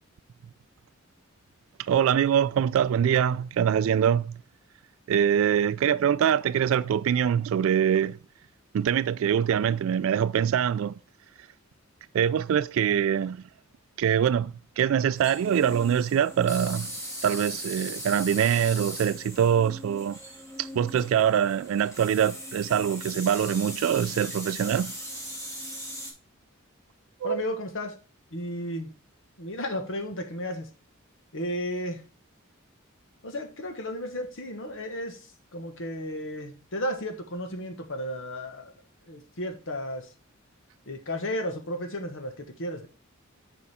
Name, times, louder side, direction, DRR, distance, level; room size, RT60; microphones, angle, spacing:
voice 1, 1.8-4.4 5.1-8.2 8.7-10.9 12.1-13.4 14.0-16.9 17.2-20.2 20.6-24.9 27.2-27.4, right 8 dB, 70° right, 0.3 m, -24 dB
sound 1, 15.1-26.1, equal, 15° left, 2.4 m, -39 dB
voice 2, 27.2-27.9 28.3-28.9 29.4-30.7 31.3-32.0 33.2-35.2 35.5-38.7 39.1-40.1 40.9-42.9, left 1 dB, 65° left, 1.4 m, -33 dB
7.0 x 5.1 x 3.6 m
head